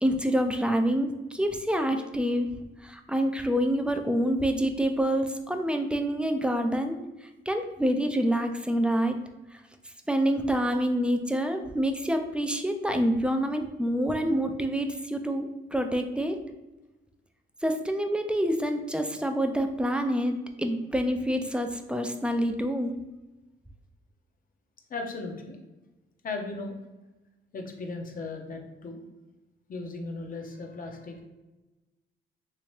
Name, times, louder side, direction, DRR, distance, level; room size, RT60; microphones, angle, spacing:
voice 1, 0.0-2.5 2.8-7.0 7.5-9.2 9.5-9.6 10.1-16.4 17.6-23.0, equal, 5° right, 5 dB, 0.3 m, -27 dB
voice 2, 24.9-25.6 26.2-26.7 27.5-29.0 29.7-31.2, left 3 dB, 45° left, 3 dB, 0.7 m, -36 dB
3.3 x 2.8 x 3.1 m, 1.1 s
cardioid pair, 90°, 20 cm